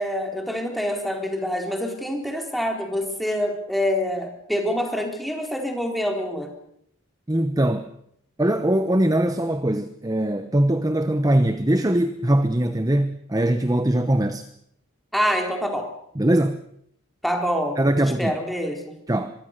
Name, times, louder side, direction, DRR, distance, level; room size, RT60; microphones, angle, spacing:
voice 1, 0.0-6.5 15.1-15.9 17.2-17.8 18.2-18.9, equal, ahead, 4.1 m, -26 dB
voice 2, 7.3-7.9 8.4-14.4 16.2-16.6 17.8-18.4 19.1-19.3, right 1 dB, 20° right, 1.0 m, -21 dB
24.5 x 23.0 x 6.7 m
head